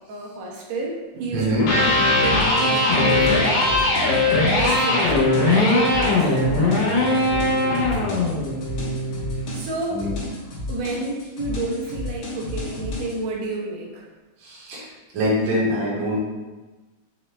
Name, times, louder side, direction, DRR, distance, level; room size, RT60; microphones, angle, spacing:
voice 1, 0.1-3.9 4.3-8.1 9.5-10.0 10.7-14.0, right 2 dB, 75° right, -2 dB, 1.8 m, -30 dB
voice 2, 1.3-1.6 9.9-10.1 14.4-14.8 15.1-16.2, equal, 55° right, -7 dB, 1.4 m, -23 dB
Electric guitar, 1.5-9.6, left 2 dB, 90° left, 2.2 m, -20 dB
sound 1, 2.2-13.2, left 2 dB, 70° left, 2.0 m, -32 dB
5.3 x 2.0 x 3.0 m, 1.2 s
omnidirectional pair, 3.4 m